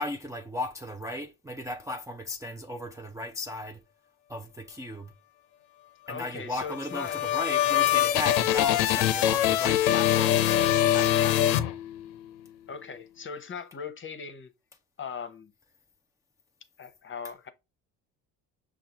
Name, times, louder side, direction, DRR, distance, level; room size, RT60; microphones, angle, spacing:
voice 1, 0.0-3.8 4.3-5.1 6.1-11.6, left 1 dB, 10° right, 0.5 m, -36 dB
voice 2, 6.1-7.2 12.7-14.5 15.0-15.5 16.8-17.5, left 6 dB, 30° left, 0.9 m, -39 dB
sound 1, 6.7-12.3, left 12 dB, 80° left, 0.6 m, -24 dB
5.7 x 2.5 x 3.7 m
supercardioid pair, 85°, 39 cm